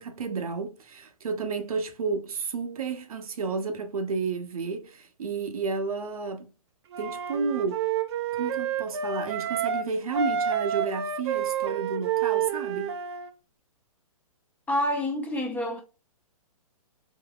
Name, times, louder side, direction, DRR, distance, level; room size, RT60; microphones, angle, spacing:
voice 1, 0.0-6.5 7.0-7.9 8.4-12.9, right 4 dB, 75° right, 0.8 m, -31 dB
Wind instrument woodwind instrument, 6.9-9.8 10.1-13.3, right 8 dB, 45° right, 0.5 m, -29 dB
voice 2, 14.7-15.8, left 1 dB, 10° left, 0.6 m, -27 dB
3.7 x 2.6 x 2.3 m
hypercardioid pair, 140°, 19 cm